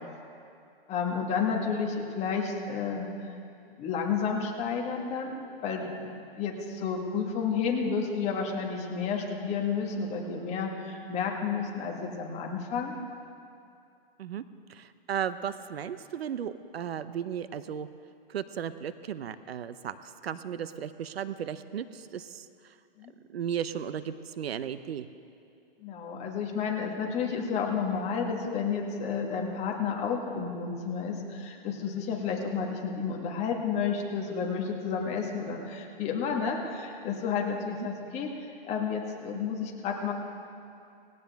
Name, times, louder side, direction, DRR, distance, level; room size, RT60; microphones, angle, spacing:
voice 1, 0.9-3.1 3.8-12.9 23.0-23.1 25.8-40.1, left 6 dB, 20° left, 1 dB, 1.7 m, -31 dB
voice 2, 14.7-17.9 18.3-22.7 23.3-25.1 37.8-37.9, right 9 dB, 85° right, 13 dB, 0.8 m, -35 dB
19.0 x 17.0 x 3.5 m, 2.5 s
hypercardioid pair, 150°, 30 cm